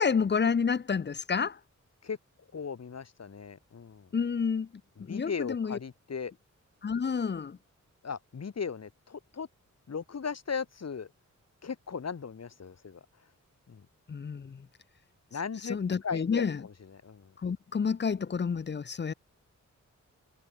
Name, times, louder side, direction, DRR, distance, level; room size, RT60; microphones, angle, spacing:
voice 1, 0.0-1.6 4.1-4.7 5.0-5.8 6.8-7.6 14.1-14.7 15.7-16.6 17.4-19.1, left 6 dB, 35° left, 0.7 m, -29 dB
voice 2, 2.5-4.1 5.0-6.3 8.0-9.5 9.9-11.1 11.6-13.1 13.7-13.9 15.3-17.3, left 6 dB, 55° left, 2.4 m, -37 dB
wide cardioid pair, 130°, 31 cm